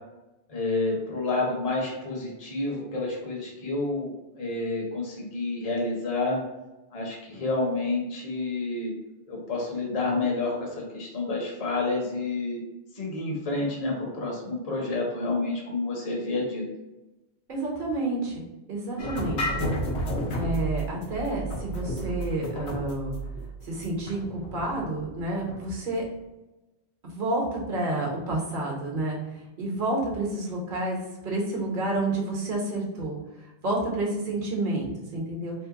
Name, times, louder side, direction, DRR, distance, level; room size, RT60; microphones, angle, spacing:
voice 1, 0.5-4.1 4.4-6.4 6.9-8.9 9.3-12.6 13.0-16.6, left 3 dB, 40° left, -3 dB, 0.9 m, -29 dB
voice 2, 17.5-18.4 18.7-19.7 20.3-23.1 23.6-26.0 27.0-29.2 29.6-33.2 33.6-35.5, right 2 dB, 50° right, -2 dB, 1.0 m, -29 dB
sound 1, 19.0-25.7, right 1 dB, 80° left, 1.0 m, -32 dB
2.8 x 2.1 x 3.6 m, 1.0 s
omnidirectional pair, 1.1 m